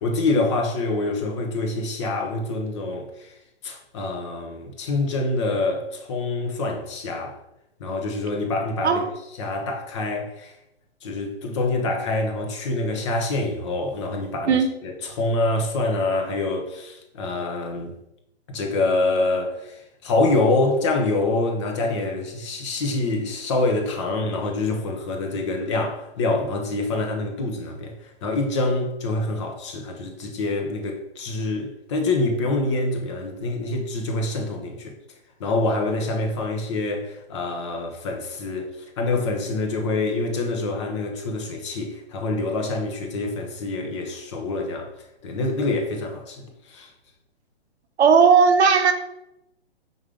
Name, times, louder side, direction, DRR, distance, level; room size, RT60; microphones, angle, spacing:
voice 1, 0.0-3.3 3.6-7.4 7.8-9.0 9.4-10.5 11.0-18.0 18.5-34.9 35.4-38.7 39.0-44.9 45.2-46.9, left 2 dB, 25° left, 0.8 m, -26 dB
voice 2, 48.0-48.9, right 6 dB, 75° right, 1.0 m, -16 dB
5.3 x 3.8 x 4.9 m
hypercardioid pair, 160°, 33 cm